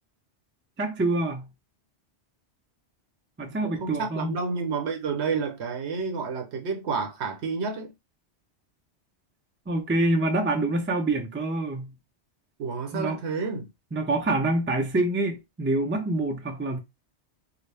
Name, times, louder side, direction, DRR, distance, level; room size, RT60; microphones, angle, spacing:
voice 1, 0.8-1.5 3.4-4.4 9.7-11.9 12.9-13.2 13.9-16.8, right 2 dB, 15° right, 0.4 m, -26 dB
voice 2, 3.4-7.9 12.6-13.7, right 5 dB, 80° right, 1.1 m, -30 dB
4.0 x 2.0 x 3.3 m
omnidirectional pair, 1.1 m